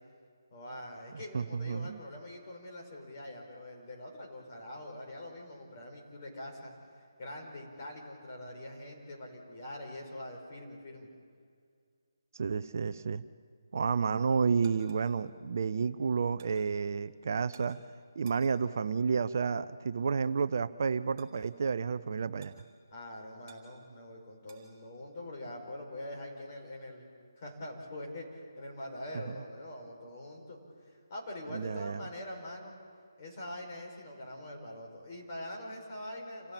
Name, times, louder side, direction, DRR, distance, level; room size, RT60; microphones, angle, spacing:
voice 1, 0.5-6.7 7.2-11.1 22.9-27.1 27.4-30.6 31.1-32.7 33.2-36.5, left 1 dB, 35° left, 5.5 m, -44 dB
voice 2, 1.3-2.0 12.3-13.2 13.7-17.8 18.2-22.5 29.3-29.4 31.5-32.1, right 5 dB, 45° right, 0.6 m, -31 dB
sound 1, 14.5-24.7, right 6 dB, 25° right, 4.7 m, -64 dB
28.5 x 16.0 x 8.9 m
figure-of-eight pair, 150°, 2 cm